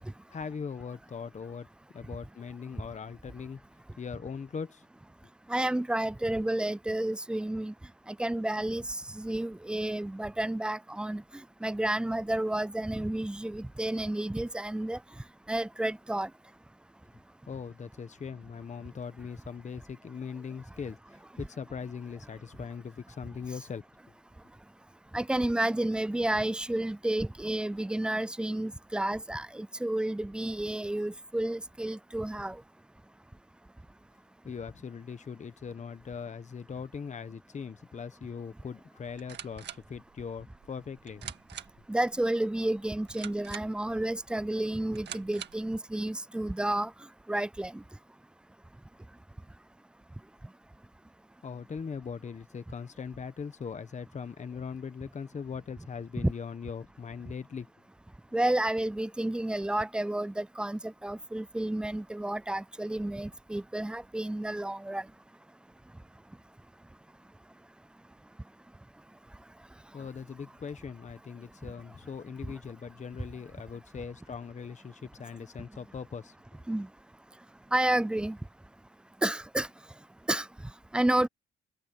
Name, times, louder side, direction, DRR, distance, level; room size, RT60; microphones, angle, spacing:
voice 1, 0.3-1.7 1.9-3.6 4.0-4.8 17.5-23.8 34.4-41.2 51.4-57.7 69.9-76.6, left 6 dB, 35° left, 1.3 m, -40 dB
voice 2, 5.5-7.7 8.1-11.2 11.6-15.0 15.5-16.3 25.1-32.6 41.9-46.9 47.3-47.8 56.2-56.3 58.3-65.0 76.7-76.9 77.7-78.4 79.2-79.7 80.3-80.5 80.9-81.3, right 1 dB, 5° right, 0.3 m, -31 dB
sound 1, 39.0-45.8, right 9 dB, 60° right, 2.3 m, -47 dB
cardioid pair, 90°, 20 cm